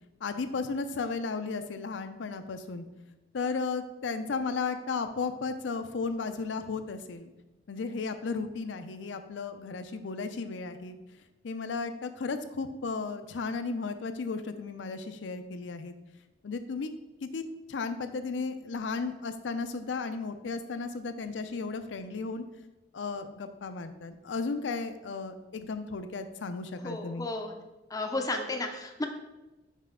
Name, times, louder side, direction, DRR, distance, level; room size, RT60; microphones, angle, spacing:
voice 1, 0.2-2.8 3.3-7.3 7.7-11.0 11.4-15.9 16.4-16.9 17.2-17.4 17.7-22.4 22.9-27.3, left 4 dB, 75° left, 9 dB, 0.5 m, -34 dB
voice 2, 26.8-27.5 27.9-29.1, left 2 dB, 20° left, 3 dB, 0.5 m, -33 dB
5.4 x 4.9 x 3.7 m, 1.0 s
head